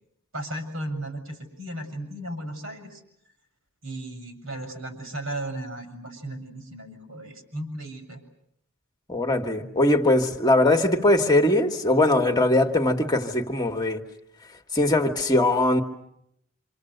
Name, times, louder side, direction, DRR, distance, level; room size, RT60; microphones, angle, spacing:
voice 1, 0.3-3.0 3.8-8.2, right 1 dB, 75° right, 6.8 m, -35 dB
voice 2, 9.1-14.0 14.7-15.8, left 1 dB, 20° left, 1.7 m, -21 dB
27.5 x 26.5 x 8.0 m
head